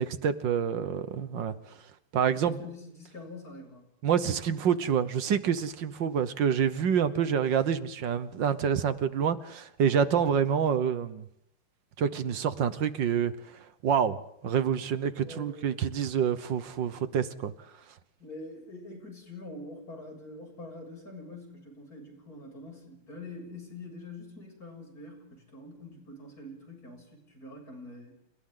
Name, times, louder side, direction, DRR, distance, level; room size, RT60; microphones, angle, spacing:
voice 1, 0.0-1.5 2.1-2.6 4.0-11.2 12.0-14.2 14.4-17.5, right 7 dB, 65° right, 13 dB, 1.7 m, -27 dB
voice 2, 2.3-3.9 15.1-15.8 18.2-28.1, left 2 dB, 45° left, 1 dB, 7.8 m, -45 dB
30.0 x 29.0 x 3.9 m, 0.73 s
omnidirectional pair, 2.3 m